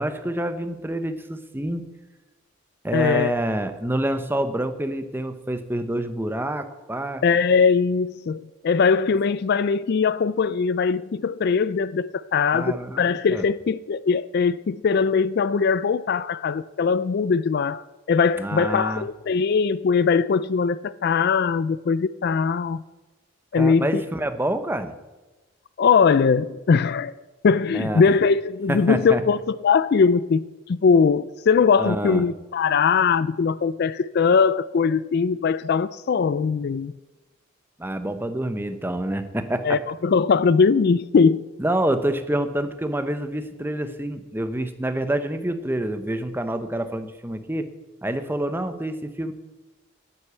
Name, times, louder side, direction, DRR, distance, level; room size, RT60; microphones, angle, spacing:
voice 1, 0.0-1.9 2.8-7.2 12.5-13.4 18.4-19.0 23.6-24.9 27.7-28.0 28.7-29.2 31.8-32.2 37.8-39.8 41.6-47.7 48.0-49.3, right 1 dB, 10° right, 9 dB, 0.8 m, -27 dB
voice 2, 2.9-3.3 7.2-22.8 23.5-24.0 25.8-27.1 27.4-36.9 39.6-41.5, left 5 dB, 50° left, 17 dB, 0.3 m, -21 dB
9.9 x 9.9 x 8.1 m, 1.1 s
head